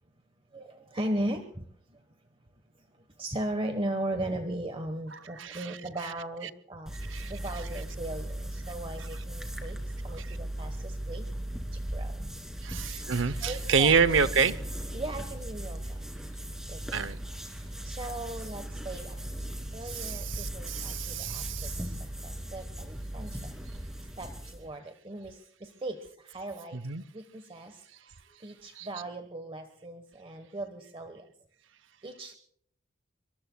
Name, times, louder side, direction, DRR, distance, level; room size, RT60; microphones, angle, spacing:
voice 1, 0.5-2.1 2.7-6.9 7.3-11.2 11.7-12.2 13.4-13.9 14.9-16.0 16.7-17.0 17.5-19.3 19.7-21.9 22.2-23.5 24.2-26.8 27.1-28.1 28.4-31.3 32.0-32.4, right 1 dB, 30° right, 7 dB, 1.2 m, -38 dB
voice 2, 5.4-5.7 6.9-7.3 10.2-10.4 12.6-14.6 16.9-17.2 19.9-21.8 26.7-27.0 28.8-28.9, right 5 dB, 65° right, 15 dB, 0.7 m, -28 dB
sound 1, 6.9-24.7, right 1 dB, 5° right, 2.6 m, -37 dB
26.0 x 23.5 x 2.3 m, 0.64 s
head